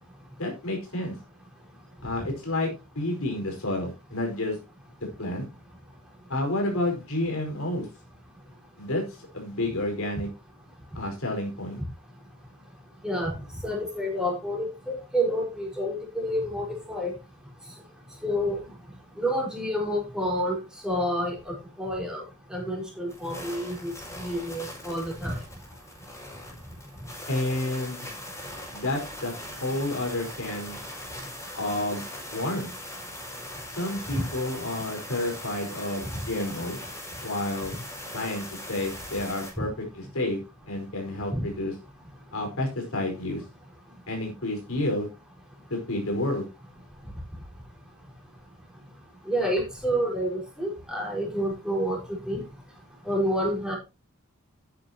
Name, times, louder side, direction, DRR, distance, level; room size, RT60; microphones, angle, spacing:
voice 1, 0.4-1.2 2.0-2.7 2.9-4.5 5.2-5.4 6.3-7.9 8.8-9.0 9.3-10.3 10.9-11.8 27.3-28.1 28.7-29.3 29.6-30.8 31.5-32.0 32.3-32.7 33.7-36.8 37.2-37.8 38.1-39.7 39.9-40.4 40.7-41.7 42.3-43.4 44.1-45.1 45.7-46.5, left 1 dB, 70° left, 2 dB, 4.9 m, -30 dB
voice 2, 13.0-13.3 13.6-17.1 18.2-18.6 19.2-20.6 20.8-22.2 22.5-25.4 39.6-39.7 41.3-41.5 49.3-52.0 52.2-52.4 53.0-53.8, equal, 5° right, -2 dB, 5.0 m, -29 dB
sound 1, 23.1-39.5, left 1 dB, 15° left, 5.5 m, -40 dB
12.5 x 9.8 x 2.9 m, 0.27 s
head